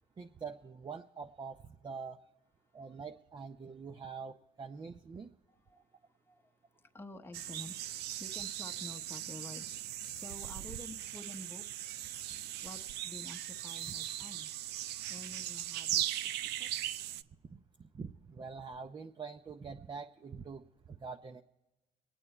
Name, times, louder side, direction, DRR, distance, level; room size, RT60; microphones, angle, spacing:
voice 1, 0.2-2.2 2.7-5.3 17.5-21.4, right 5 dB, 25° right, 0.6 m, -45 dB
voice 2, 5.5-11.9 12.6-14.5 15.1-16.7, left 2 dB, 15° left, 0.9 m, -50 dB
sound 1, 7.3-17.2, right 12 dB, 75° right, 0.5 m, -39 dB
24.5 x 9.1 x 4.3 m
cardioid pair, 110°, 17 cm